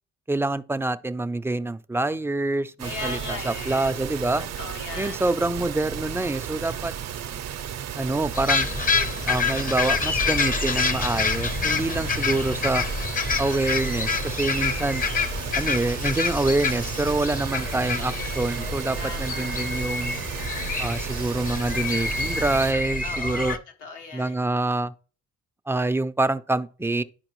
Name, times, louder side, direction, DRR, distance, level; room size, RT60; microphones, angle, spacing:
voice 1, 0.3-4.4 5.0-6.9 8.0-8.7 9.3-12.8 13.4-15.0 15.5-20.2 20.8-23.6 24.1-24.9 25.7-27.0, right 2 dB, 10° right, 0.4 m, -26 dB
voice 2, 2.8-3.9 4.4-5.2 19.0-19.7 23.0-24.4, left 3 dB, 85° left, 1.6 m, -37 dB
sound 1, 2.8-22.7, right 9 dB, 60° right, 0.6 m, -34 dB
sound 2, 8.3-23.6, left 4 dB, 30° left, 0.7 m, -27 dB
11.0 x 4.7 x 3.0 m
cardioid pair, 90°, 30 cm